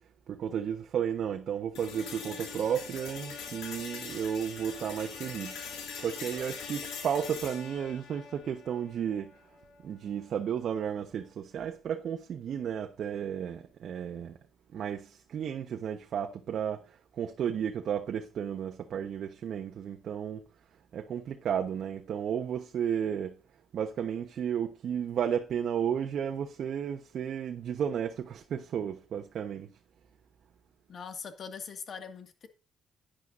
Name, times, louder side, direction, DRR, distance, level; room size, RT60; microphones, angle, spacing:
voice 1, 0.3-9.3 9.8-14.4 14.7-20.4 20.9-23.4 23.7-29.7, right 8 dB, 65° right, 1.1 m, -33 dB
sound 1, 1.8-9.8, left 5 dB, 90° left, 3.3 m, -42 dB
voice 2, 30.9-32.5, left 6 dB, 55° left, 2.0 m, -42 dB
11.0 x 10.5 x 2.6 m
cardioid pair, 90°, 0 cm